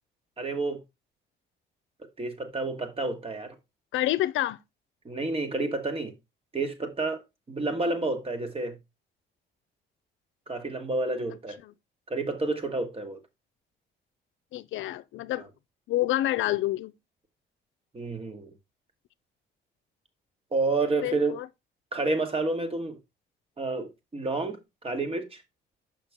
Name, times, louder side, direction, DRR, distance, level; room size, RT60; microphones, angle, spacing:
voice 1, 0.4-0.8 2.2-3.6 5.0-6.1 6.5-7.2 7.5-8.8 10.5-11.6 12.1-13.2 15.4-15.5 17.9-18.5 20.5-21.4 21.9-23.0 23.6-25.4, right 3 dB, 30° right, 1.5 m, -30 dB
voice 2, 3.9-4.6 11.6-11.7 14.5-15.4 15.9-16.9 21.0-21.5, left 15 dB, 75° left, 0.5 m, -28 dB
5.9 x 5.8 x 3.5 m
cardioid pair, 90°, 20 cm